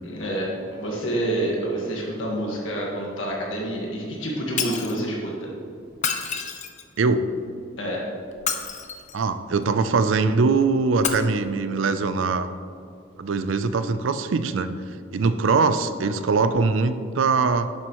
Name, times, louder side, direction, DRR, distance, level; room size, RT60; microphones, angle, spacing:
voice 1, 0.0-5.5 7.8-8.0, right 1 dB, 75° left, -3 dB, 1.6 m, -28 dB
Shatter, 4.6-5.0 5.9-7.0 8.3-9.2 11.0-11.1, left 7 dB, 40° left, 0.7 m, -28 dB
voice 2, 7.0-7.3 9.1-12.5 13.2-14.7 15.1-17.7, right 4 dB, 70° right, 11 dB, 0.5 m, -22 dB
10.5 x 7.4 x 3.0 m, 2.4 s
head